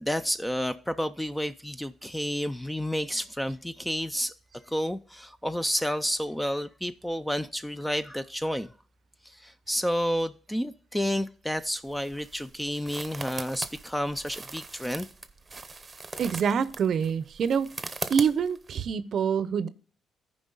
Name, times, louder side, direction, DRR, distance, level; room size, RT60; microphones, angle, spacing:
voice 1, 0.0-8.7 9.2-15.1, equal, 5° left, 0.4 m, -30 dB
sound 1, 11.6-18.8, right 3 dB, 25° right, 0.8 m, -40 dB
voice 2, 16.2-17.7 18.1-19.7, right 7 dB, 60° right, 0.5 m, -26 dB
14.0 x 5.0 x 3.9 m
cardioid pair, 90°, 0 cm